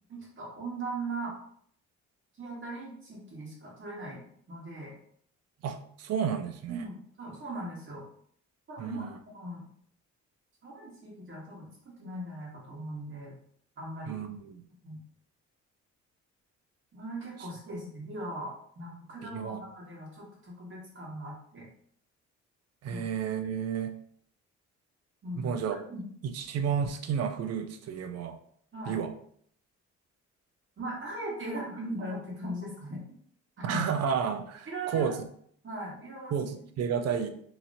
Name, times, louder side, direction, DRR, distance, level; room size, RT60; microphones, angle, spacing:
voice 1, 0.1-1.3 2.4-4.9 6.7-8.0 8.7-9.6 10.6-13.3 13.8-14.2 14.8-15.0 16.9-21.7 22.9-23.0 25.2-25.5 25.9-26.0 28.7-29.0 30.8-33.0 33.6-33.9 34.7-35.1 35.6-36.3, right 1 dB, 40° right, -4 dB, 1.4 m, -39 dB
voice 2, 5.6-6.9 8.8-9.1 14.0-14.6 19.2-19.6 22.8-23.9 25.3-25.8 26.2-28.4 28.9-29.1 33.6-35.2 36.3-37.3, right 7 dB, 55° right, 7 dB, 0.5 m, -31 dB
2.8 x 2.7 x 2.6 m, 0.63 s
cardioid pair, 90°, 30 cm